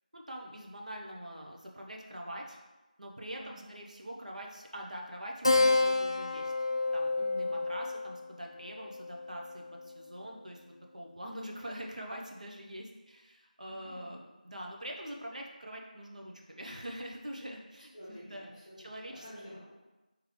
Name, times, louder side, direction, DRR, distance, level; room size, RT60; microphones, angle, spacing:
voice 1, 0.1-2.6 3.0-6.5 6.9-18.5 18.8-19.3, equal, 55° right, 0 dB, 0.7 m, -44 dB
voice 2, 3.3-3.7 7.4-7.5 13.6-14.1 17.9-18.8 19.0-19.6, equal, 10° left, -9 dB, 1.1 m, -50 dB
Keyboard (musical), 5.4-10.4, left 3 dB, 35° left, 0.3 m, -30 dB
3.3 x 3.1 x 3.6 m, 1.1 s
figure-of-eight pair, 175°, 5 cm